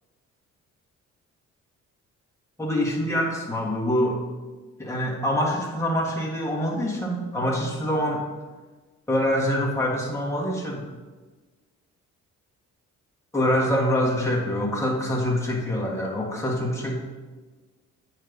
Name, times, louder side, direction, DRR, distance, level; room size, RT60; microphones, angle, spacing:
voice 1, 2.6-4.2 4.8-8.2 9.1-10.8 13.3-17.0, equal, 10° left, -3 dB, 1.8 m, -25 dB
8.9 x 3.3 x 5.2 m, 1.3 s
cardioid pair, 90°, 30 cm